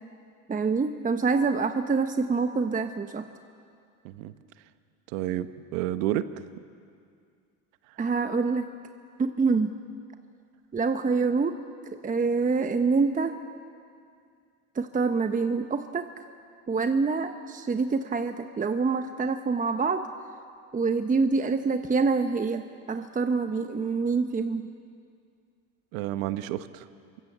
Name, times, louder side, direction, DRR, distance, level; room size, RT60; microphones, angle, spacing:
voice 1, 0.5-3.2 8.0-8.7 9.2-9.7 10.7-11.6 12.0-13.4 14.7-16.0 16.7-20.1 20.7-24.7, right 4 dB, 20° right, 7 dB, 1.1 m, -26 dB
voice 2, 5.1-6.3 25.9-26.9, right 13 dB, 75° right, 11 dB, 1.4 m, -30 dB
27.0 x 24.5 x 7.5 m, 2.3 s
supercardioid pair, 100°, 41 cm